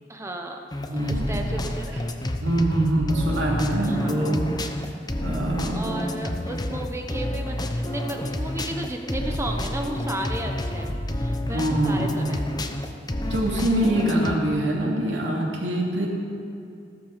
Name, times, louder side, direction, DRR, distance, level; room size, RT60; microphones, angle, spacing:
voice 1, 0.1-0.6 0.9-2.1 3.8-4.3 5.6-12.5, right 1 dB, 15° right, 3 dB, 0.9 m, -34 dB
sound 1, 0.7-14.4, left 1 dB, 20° left, 0.9 m, -29 dB
voice 2, 0.9-1.4 2.4-4.4 5.2-6.1 11.5-12.4 13.3-16.1, right 1 dB, 85° right, -1 dB, 2.7 m, -24 dB
15.0 x 12.5 x 6.6 m, 2.5 s
head